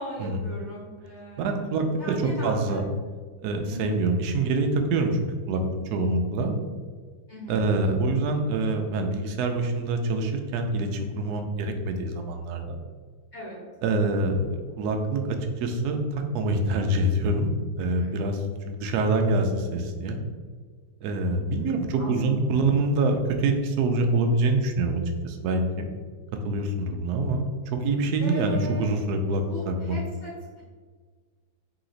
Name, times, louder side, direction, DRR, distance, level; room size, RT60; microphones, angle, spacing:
voice 1, 0.0-2.8 3.6-4.0 7.3-8.0 13.3-13.6 17.9-18.2 21.0-22.3 28.2-28.9 29.4-30.6, right 1 dB, 40° left, -7 dB, 1.8 m, -38 dB
voice 2, 1.4-2.1 2.4-2.8 3.4-5.2 5.5-5.6 5.9-6.5 7.5-12.8 13.8-17.5 17.8-20.2 21.0-25.6 26.4-30.0, right 2 dB, 70° right, 4 dB, 0.9 m, -25 dB
4.1 x 2.9 x 3.8 m, 1.5 s
omnidirectional pair, 2.0 m